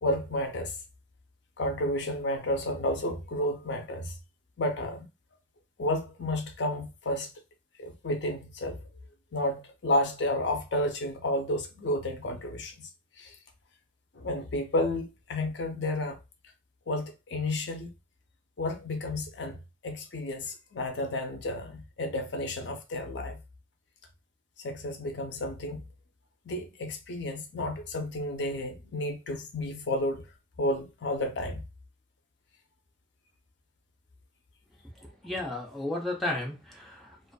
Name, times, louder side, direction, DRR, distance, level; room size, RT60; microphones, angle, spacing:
voice 1, 0.0-0.8 1.6-4.2 4.6-5.1 5.8-7.3 7.8-8.9 9.3-12.9 13.2-13.4 14.1-16.2 16.9-17.9 18.6-23.4 24.6-25.9 26.4-30.3 30.6-31.6, left 1 dB, 75° left, 0.6 m, -31 dB
voice 2, 35.2-37.3, left 1 dB, ahead, 0.5 m, -33 dB
2.4 x 2.4 x 2.2 m
head